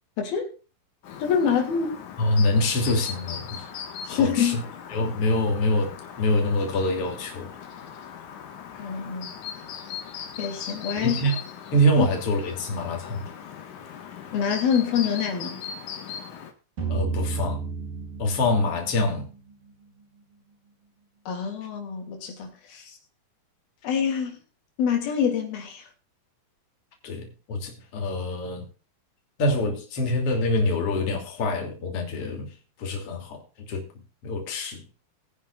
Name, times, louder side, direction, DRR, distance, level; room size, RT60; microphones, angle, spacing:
voice 1, 0.2-0.5 1.2-1.9 4.1-4.6 8.8-9.3 10.4-11.2 12.0-12.1 14.3-15.6 21.3-22.8 23.8-24.4 24.8-25.8, left 7 dB, 90° left, 4.7 m, -25 dB
Chirp tweet, 1.0-16.5, left 8 dB, 60° left, 2.9 m, -39 dB
voice 2, 2.2-3.6 4.1-4.6 4.9-5.9 6.2-7.5 10.9-11.4 11.7-13.3 16.9-17.6 18.2-19.3 27.0-28.6 29.4-32.5 32.8-33.9 34.2-34.8, left 1 dB, 40° left, 3.6 m, -25 dB
sound 1, 16.8-19.7, right 5 dB, 80° right, 7.9 m, -32 dB
21.0 x 9.6 x 2.5 m
omnidirectional pair, 4.1 m